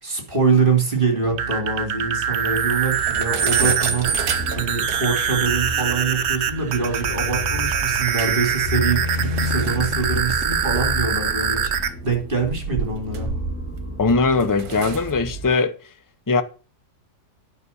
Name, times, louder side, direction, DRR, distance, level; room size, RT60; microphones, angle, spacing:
voice 1, 0.0-4.1 4.5-13.3, right 5 dB, 35° right, 3.2 m, -24 dB
sound 1, 1.0-1.1 1.4-1.5 1.8-1.9 2.3-2.4 2.7-5.3 5.8-5.9 7.7-8.5 8.8-11.4 12.2-13.9 14.3-15.1, right 7 dB, 70° right, 1.5 m, -30 dB
sound 2, 1.2-11.9, right 7 dB, 50° right, 1.0 m, -24 dB
sound 3, 2.9-15.5, left 1 dB, 75° left, 3.2 m, -31 dB
voice 2, 14.0-15.7 16.3-16.4, left 4 dB, 30° left, 0.4 m, -20 dB
9.6 x 6.0 x 6.9 m
omnidirectional pair, 1.6 m